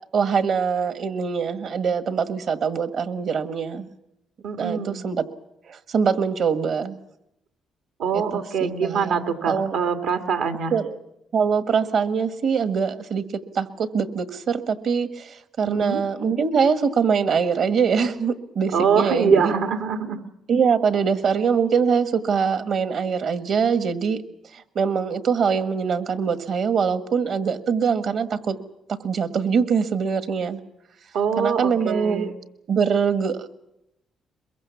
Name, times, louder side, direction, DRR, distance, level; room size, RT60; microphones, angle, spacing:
voice 1, 0.1-3.9 4.6-5.2 5.7-7.0 8.1-9.2 9.5-9.8 10.7-11.0 11.3-13.2 13.5-19.5 20.5-24.2 24.5-28.6 28.9-30.6 31.4-32.3 32.7-33.4, right 6 dB, 65° right, 11 dB, 1.6 m, -23 dB
voice 2, 4.4-5.0 8.0-10.7 15.6-16.0 18.7-20.2 31.1-32.3, right 6 dB, 85° right, 8 dB, 1.9 m, -23 dB
22.5 x 22.5 x 7.1 m, 0.83 s
cardioid pair, 90°, 0 cm